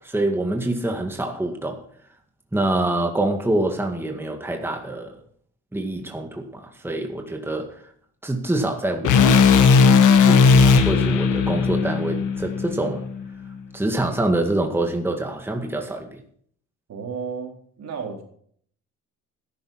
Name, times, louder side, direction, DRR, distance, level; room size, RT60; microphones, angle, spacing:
voice 1, 0.0-1.8 2.5-5.2 5.7-7.8 8.2-9.4 10.2-13.1 13.7-16.2, right 2 dB, 5° right, 3 dB, 2.0 m, -26 dB
sound 1, 9.0-13.2, left 5 dB, 80° left, 1.5 m, -16 dB
voice 2, 16.9-18.2, right 5 dB, 60° right, 1 dB, 4.0 m, -33 dB
13.0 x 10.5 x 5.8 m, 0.62 s
cardioid pair, 90°, 30 cm